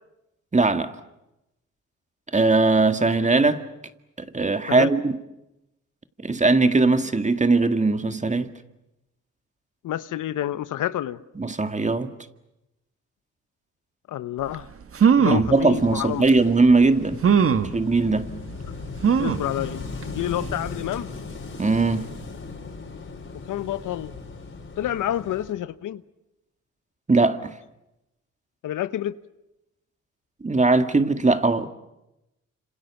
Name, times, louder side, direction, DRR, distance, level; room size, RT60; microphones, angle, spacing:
voice 1, 0.5-0.9 2.3-3.6 4.2-5.2 6.2-8.5 11.4-12.1 15.2-17.2 17.7-18.3 21.6-22.1 27.1-27.5 30.4-31.7, right 3 dB, 25° right, 2.0 m, -20 dB
voice 2, 9.8-11.2 14.1-14.7 15.2-16.2 19.2-21.1 23.5-24.1 24.8-26.0 28.6-29.1, left 12 dB, 75° left, 1.0 m, -28 dB
sound 1, 14.5-14.6 14.9-15.5 16.3-16.4 17.2-17.7 19.0-19.5 20.0-20.1 20.4-20.5, right 7 dB, 45° right, 1.5 m, -19 dB
Wind / Waves surf, 15.5-25.5, left 3 dB, 40° left, 5.1 m, -38 dB
29.0 x 27.0 x 7.2 m
cardioid pair, 70°, 31 cm